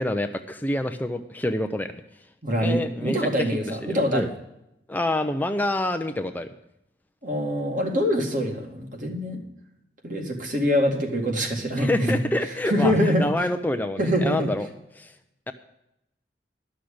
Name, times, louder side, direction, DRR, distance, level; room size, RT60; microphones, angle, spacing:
voice 1, 0.0-2.0 2.6-4.3 4.9-6.5 11.8-14.7 14.9-15.1 15.5-15.6, left 1 dB, 10° left, 8 dB, 0.5 m, -27 dB
voice 2, 2.4-4.3 7.2-9.4 10.0-12.2 12.7-13.3 14.0-14.5, equal, 50° right, 1 dB, 2.3 m, -24 dB
11.5 x 6.4 x 8.5 m, 0.84 s
head